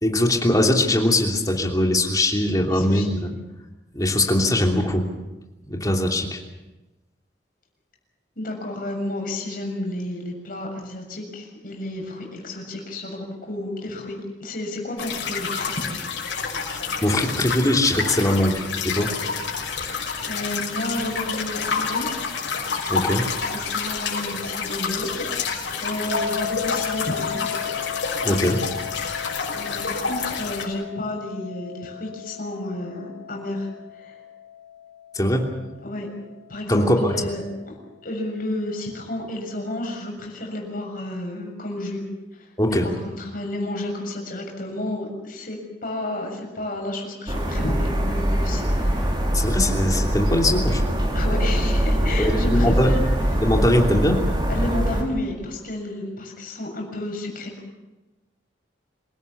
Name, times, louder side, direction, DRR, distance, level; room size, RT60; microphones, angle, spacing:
voice 1, 0.0-3.3 3.9-5.1 5.7-6.4 16.7-19.1 22.9-23.3 28.2-28.6 35.1-35.5 36.7-37.1 42.6-42.9 49.3-50.8 52.2-52.9 53.4-54.2, left 1 dB, 20° left, 1 dB, 3.0 m, -21 dB
voice 2, 2.7-3.1 8.4-16.0 19.9-22.2 23.5-27.5 29.5-34.2 35.8-36.1 36.5-37.4 38.0-42.0 42.3-49.1 51.1-53.1 54.5-57.5, left 1 dB, 50° left, 1 dB, 7.1 m, -31 dB
sound 1, 15.0-30.7, left 5 dB, 80° left, 6.2 m, -28 dB
sound 2, 26.1-37.0, left 7 dB, 80° right, 6.3 m, -35 dB
sound 3, 47.3-55.0, equal, 25° right, 3.6 m, -22 dB
27.0 x 18.0 x 7.1 m, 1.1 s
head